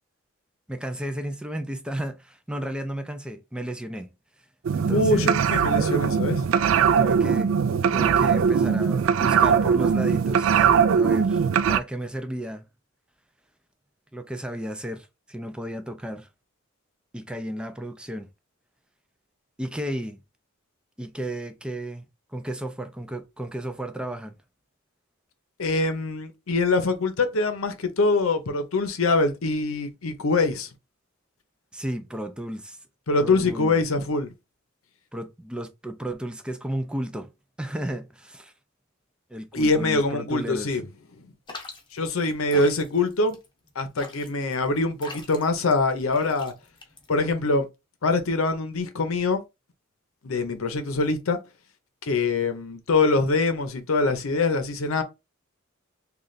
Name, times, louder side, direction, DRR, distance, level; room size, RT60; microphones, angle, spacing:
voice 1, 0.7-4.1 4.7-5.4 7.0-7.5 7.9-10.7 10.9-12.7 14.1-16.3 17.1-18.3 19.6-20.2 21.0-22.0 22.3-24.4 31.7-32.8 33.2-33.8 35.1-37.3 37.6-38.5 39.3-40.7 42.5-42.6, right 1 dB, 5° right, 0.4 m, -33 dB
sound 1, 4.6-11.8, right 7 dB, 70° right, 0.3 m, -21 dB
voice 2, 4.9-6.4 8.7-8.8 25.6-30.7 33.1-34.3 39.5-40.9 41.9-43.4 43.8-46.5 47.1-47.7 48.0-49.4 50.2-51.4 52.0-55.0, left 3 dB, 85° left, 0.7 m, -24 dB
sound 2, 41.5-47.4, left 3 dB, 25° left, 0.8 m, -44 dB
3.2 x 2.4 x 3.9 m
head